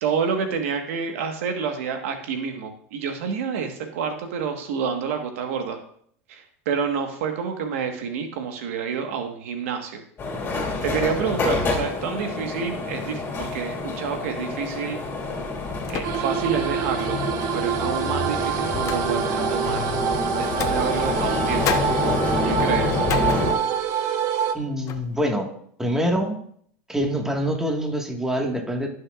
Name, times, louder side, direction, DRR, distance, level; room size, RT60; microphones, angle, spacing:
voice 1, 0.0-5.8 6.3-10.0 10.8-15.0 15.9-17.2 17.5-19.9 20.3-21.8 22.4-23.0, right 6 dB, 80° right, 5 dB, 1.5 m, -28 dB
sound 1, 10.2-23.5, left 3 dB, 30° left, 2.8 m, -27 dB
sound 2, 14.5-14.8 15.8-16.5 16.9-17.0 18.0-19.4 20.4-21.4 21.6-24.0 24.4-24.6 24.9-25.2, left 8 dB, 45° left, 1.0 m, -33 dB
sound 3, 16.0-24.5, right 8 dB, 50° right, 1.0 m, -26 dB
voice 2, 24.5-25.5 25.8-26.4 26.9-28.9, equal, 5° right, 2 dB, 1.7 m, -25 dB
16.5 x 6.4 x 2.5 m, 0.63 s
supercardioid pair, 110°, 7 cm